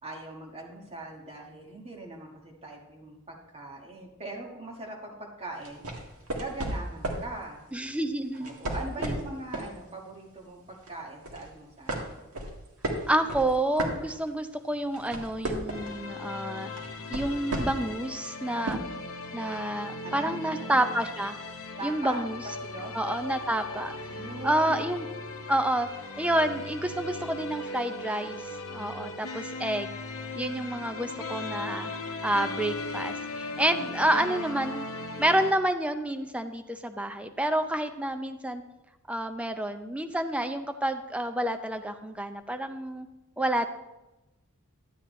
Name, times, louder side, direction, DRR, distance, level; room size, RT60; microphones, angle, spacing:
voice 1, 0.0-5.9 6.4-7.6 8.4-12.0 20.0-21.0 21.8-22.2 22.6-23.0 24.1-24.8 33.7-34.4, right 2 dB, 25° right, 0 dB, 1.5 m, -41 dB
sound 1, 5.6-7.3 8.3-9.7 10.2-10.4 10.8-11.5 11.9-14.5 14.8-16.0 16.8-17.9 18.7-18.8, right 1 dB, 80° right, 1.6 m, -33 dB
voice 2, 7.7-8.5 9.0-9.2 13.1-16.7 17.1-18.8 19.3-21.4 21.8-22.4 22.9-23.9 24.4-25.1 25.5-25.9 26.2-30.0 30.4-31.9 32.2-34.8 35.2-38.6 39.1-43.1 43.4-43.7, right 1 dB, 5° right, 7 dB, 0.5 m, -29 dB
sound 2, 15.7-35.5, left 3 dB, 65° left, 0.9 m, -38 dB
12.0 x 8.4 x 3.2 m, 0.99 s
head